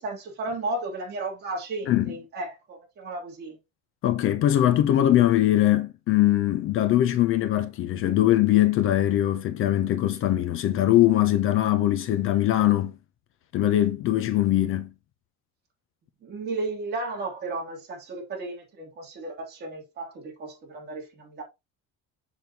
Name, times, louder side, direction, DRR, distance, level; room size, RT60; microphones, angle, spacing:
voice 1, 0.0-3.6 16.2-21.4, right 2 dB, 30° right, 2.9 m, -34 dB
voice 2, 4.0-12.9 13.5-14.9, left 13 dB, 40° left, 0.7 m, -21 dB
7.1 x 6.2 x 2.9 m
cardioid pair, 175°, 31 cm